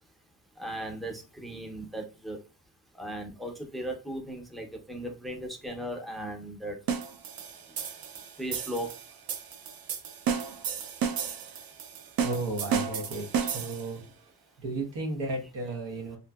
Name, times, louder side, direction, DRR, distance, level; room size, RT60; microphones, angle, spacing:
voice 1, 0.6-2.4 2.9-6.8 7.7-7.8 8.4-9.0, right 1 dB, ahead, 3 dB, 0.5 m, -37 dB
sound 1, 6.9-14.0, right 7 dB, 60° right, 0.5 m, -33 dB
voice 2, 12.2-14.0 14.6-16.2, right 2 dB, 90° right, 1 dB, 1.0 m, -34 dB
2.7 x 2.6 x 2.2 m, 0.30 s
wide cardioid pair, 95°, 40 cm